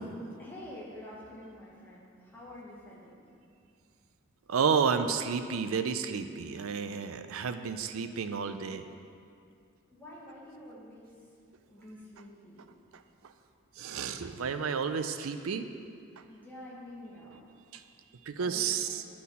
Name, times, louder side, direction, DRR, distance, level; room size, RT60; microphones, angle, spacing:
voice 1, 0.4-3.2 9.9-11.2 11.7-12.7 16.3-17.4 18.4-18.8, left 1 dB, 10° left, -7 dB, 1.6 m, -48 dB
voice 2, 4.5-8.9 13.8-15.7 17.7-17.8 18.3-19.0, right 6 dB, 85° right, 9 dB, 0.5 m, -31 dB
10.0 x 4.3 x 5.5 m, 2.4 s
head